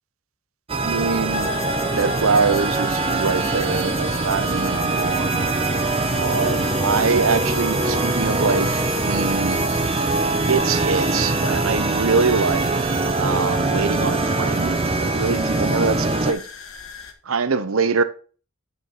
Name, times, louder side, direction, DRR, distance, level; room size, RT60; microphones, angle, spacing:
sound 1, 0.7-16.3, right 3 dB, 25° right, 0.6 m, -23 dB
voice 1, 0.8-1.5 1.9-5.5 6.1-9.6 10.4-16.4 17.3-18.0, right 4 dB, 75° right, 0.8 m, -24 dB
sound 2, 1.3-17.1, left 7 dB, 70° left, 1.3 m, -36 dB
8.8 x 5.2 x 4.1 m
head